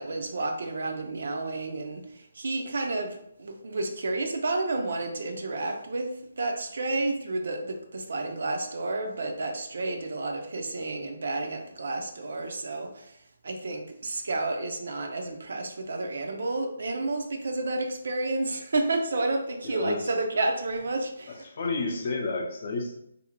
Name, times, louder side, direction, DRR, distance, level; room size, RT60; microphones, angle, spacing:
voice 1, 0.0-13.2 13.4-21.4, right 2 dB, 65° right, 4 dB, 0.5 m, -31 dB
voice 2, 19.6-20.1 21.3-23.0, left 3 dB, 50° left, 1 dB, 0.5 m, -31 dB
2.6 x 2.1 x 2.8 m, 0.75 s
figure-of-eight pair, 155°, 0 cm